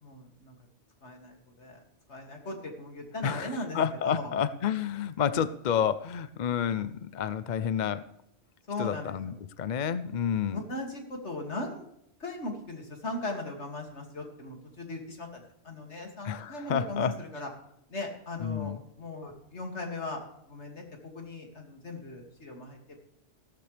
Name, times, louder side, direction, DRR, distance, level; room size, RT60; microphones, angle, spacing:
voice 1, 0.0-0.5 1.0-1.8 2.1-3.8 4.2-4.3 8.7-9.1 10.5-11.9 12.2-17.5 17.9-20.8 21.1-23.0, left 2 dB, 70° left, 2 dB, 2.8 m, -38 dB
voice 2, 3.2-8.1 8.8-10.6 16.2-17.2 18.4-18.8, left 8 dB, 50° left, 14 dB, 0.6 m, -30 dB
15.5 x 13.0 x 3.4 m, 0.77 s
omnidirectional pair, 1.2 m